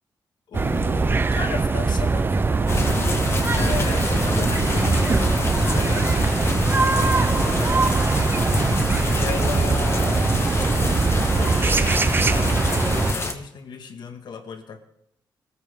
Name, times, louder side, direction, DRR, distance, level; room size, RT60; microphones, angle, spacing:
voice 1, 0.5-3.2 3.5-7.9 9.0-10.5 10.7-14.8, left 6 dB, 70° left, 6 dB, 2.0 m, -35 dB
sound 1, 0.5-13.1, right 4 dB, 25° right, 0.7 m, -22 dB
sound 2, 2.7-13.3, left 2 dB, 35° left, 1.7 m, -26 dB
22.0 x 14.0 x 3.8 m, 0.75 s
cardioid pair, 110°, 8 cm